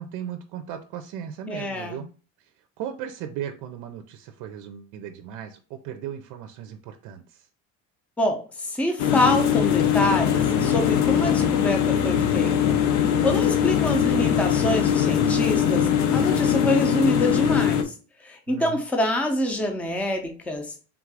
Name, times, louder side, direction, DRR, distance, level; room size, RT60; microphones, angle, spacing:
voice 1, 0.0-2.1 2.4-2.5 2.8-7.5 18.5-18.8, right 9 dB, 80° right, 0.5 m, -36 dB
voice 2, 1.5-2.0 8.2-12.6 13.2-17.9 18.2-20.7, left 1 dB, 5° left, 0.5 m, -26 dB
sound 1, 9.0-17.8, left 9 dB, 70° left, 0.6 m, -21 dB
sound 2, 9.6-11.7, left 3 dB, 85° left, 2.0 m, -35 dB
3.6 x 2.5 x 4.6 m
cardioid pair, 160°, 30 cm